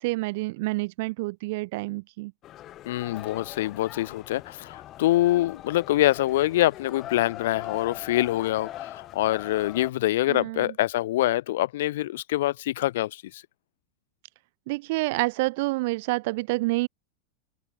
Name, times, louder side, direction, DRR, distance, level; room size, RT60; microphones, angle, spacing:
voice 1, 0.0-2.3 10.3-10.7 14.7-16.9, right 23 dB, 50° right, 4.1 m, -28 dB
sound 1, 2.4-9.9, left 13 dB, 35° left, 4.4 m, -41 dB
voice 2, 2.9-13.4, left 15 dB, 55° left, 2.2 m, -25 dB
open air
figure-of-eight pair, 90°, 0 cm